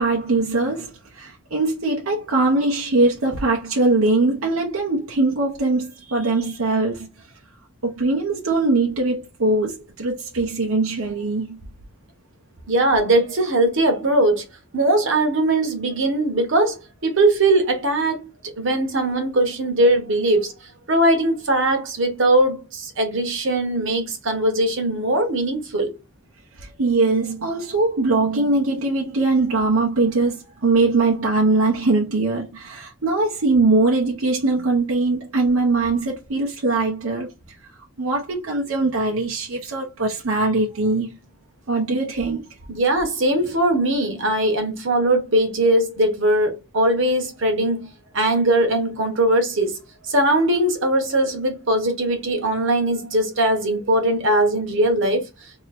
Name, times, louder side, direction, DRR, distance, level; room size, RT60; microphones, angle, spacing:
voice 1, 0.0-7.1 7.8-11.6 26.6-37.3 38.0-41.2 41.7-42.5, right 3 dB, 90° right, 0.9 m, -21 dB
voice 2, 12.7-14.4 14.7-18.3 18.6-20.5 20.9-25.9 42.7-47.9 48.1-55.3, right 1 dB, 65° right, 1.2 m, -20 dB
3.0 x 2.9 x 4.1 m
head